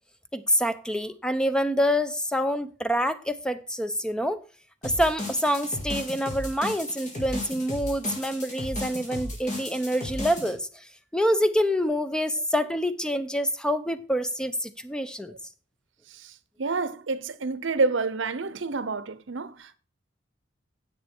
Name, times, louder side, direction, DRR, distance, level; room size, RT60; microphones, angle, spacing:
voice 1, 0.3-4.4 4.8-10.8 11.1-15.3, equal, 5° left, 0.7 m, -26 dB
sound 1, 4.8-10.5, left 1 dB, 40° left, 4.0 m, -35 dB
voice 2, 16.6-19.8, right 3 dB, 75° right, 0.8 m, -28 dB
10.0 x 7.6 x 4.4 m
head